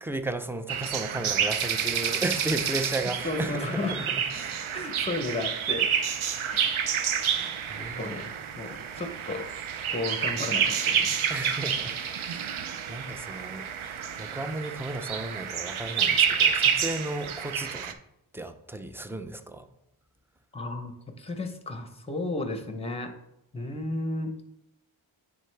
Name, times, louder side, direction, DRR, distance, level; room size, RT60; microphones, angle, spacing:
voice 1, 0.0-4.7 7.3-8.3 11.3-12.6 12.9-18.0 18.3-19.7, right 2 dB, 5° right, 9 dB, 0.4 m, -35 dB
sound 1, 0.7-17.9, right 7 dB, 75° right, 0.6 m, -29 dB
voice 2, 3.2-4.0 4.7-5.9 6.5-6.7 7.8-8.2 8.6-9.4 9.9-11.2 20.5-20.9 21.2-23.1 23.5-24.3, left 2 dB, 10° left, 6 dB, 0.8 m, -33 dB
9.4 x 3.9 x 3.4 m, 0.83 s
wide cardioid pair, 75°, 49 cm